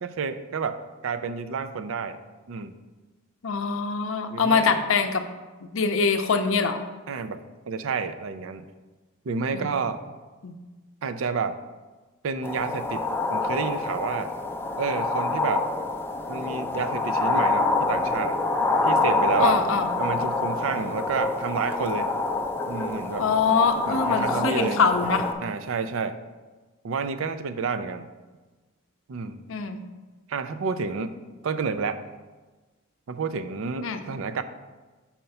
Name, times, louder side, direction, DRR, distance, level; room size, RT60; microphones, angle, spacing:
voice 1, 0.0-2.2 2.5-2.8 4.3-4.7 7.1-8.6 9.3-10.0 11.0-11.6 12.2-14.3 14.8-15.7 16.3-18.4 18.9-19.6 20.0-22.1 22.7-23.3 23.9-24.8 25.4-26.2 26.8-28.1 29.1-29.4 30.3-32.0 33.1-34.4, right 5 dB, 70° right, 11 dB, 0.4 m, -30 dB
voice 2, 3.4-5.2 5.7-6.8 9.5-9.7 10.4-10.5 19.4-19.9 23.2-25.2 29.5-29.8 33.8-34.0, left 5 dB, 65° left, 8 dB, 0.6 m, -23 dB
sound 1, 12.4-25.3, left 3 dB, 10° left, 0.4 m, -26 dB
5.7 x 4.3 x 5.4 m, 1.2 s
head